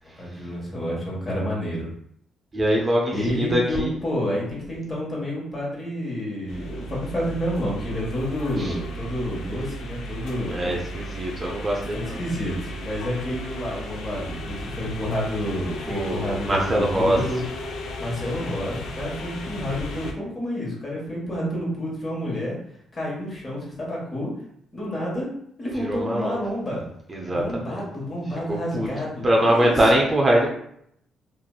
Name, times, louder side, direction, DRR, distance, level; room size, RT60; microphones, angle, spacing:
voice 1, 0.2-1.9 3.1-10.7 11.9-17.4 18.0-22.5 22.9-24.3 24.7-25.3 25.6-26.9 27.2-29.9, left 1 dB, 30° left, -4 dB, 1.3 m, -29 dB
voice 2, 2.5-4.0 8.6-8.7 10.5-12.2 15.9-17.2 25.8-26.4 27.1-27.9 28.5-28.9 29.2-30.5, right 1 dB, 30° right, -1 dB, 0.5 m, -23 dB
sound 1, 6.5-20.1, equal, 75° left, 0.4 m, -35 dB
2.8 x 2.5 x 2.3 m, 0.71 s
cardioid pair, 90°, 0 cm